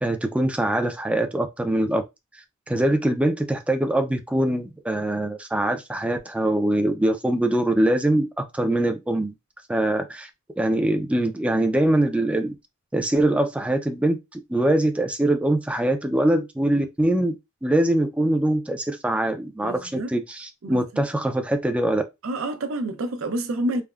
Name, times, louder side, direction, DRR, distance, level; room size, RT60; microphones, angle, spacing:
voice 1, 0.0-2.0 2.7-9.3 9.7-10.3 10.6-12.5 12.9-17.4 17.6-22.0, right 1 dB, 5° right, 0.3 m, -23 dB
voice 2, 19.6-20.1 20.6-20.8 22.2-23.8, right 1 dB, 85° right, 0.5 m, -28 dB
3.3 x 2.0 x 2.3 m
head